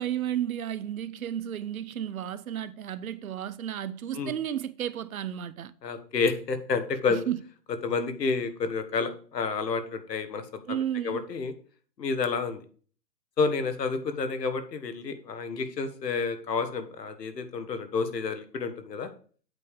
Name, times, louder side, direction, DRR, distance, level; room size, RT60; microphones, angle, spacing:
voice 1, 0.0-5.7 7.1-7.4 10.7-11.2, right 10 dB, 60° right, 0.6 m, -32 dB
voice 2, 5.8-7.3 7.8-11.5 12.0-12.6 13.4-19.1, left 4 dB, 80° left, 1.4 m, -30 dB
8.2 x 3.5 x 6.7 m
hypercardioid pair, 150°, 49 cm